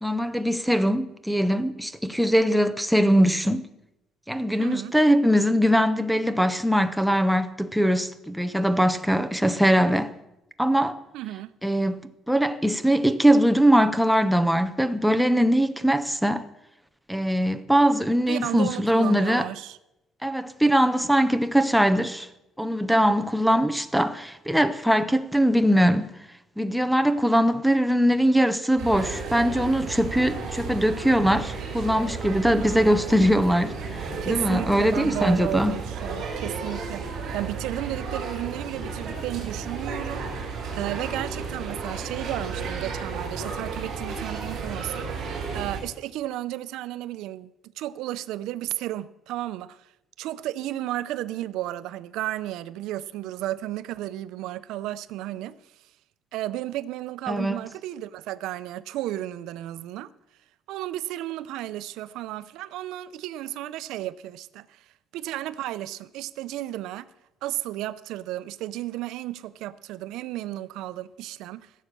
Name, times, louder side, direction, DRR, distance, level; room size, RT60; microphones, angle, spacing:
voice 1, 0.0-3.7 4.3-10.1 10.6-11.0 11.6-16.4 17.1-19.5 20.2-22.3 22.6-26.1 26.6-35.7 57.3-57.6, equal, ahead, 0.5 m, -21 dB
voice 2, 4.6-5.0 11.1-11.5 18.3-19.8 32.5-32.8 34.2-49.9 50.2-55.6 56.3-60.1 60.7-64.9 65.1-67.1 67.4-71.7, right 14 dB, 85° right, 0.5 m, -33 dB
sound 1, 28.8-45.8, right 4 dB, 45° right, 4.2 m, -33 dB
16.0 x 7.3 x 6.7 m
cardioid pair, 180°, 0 cm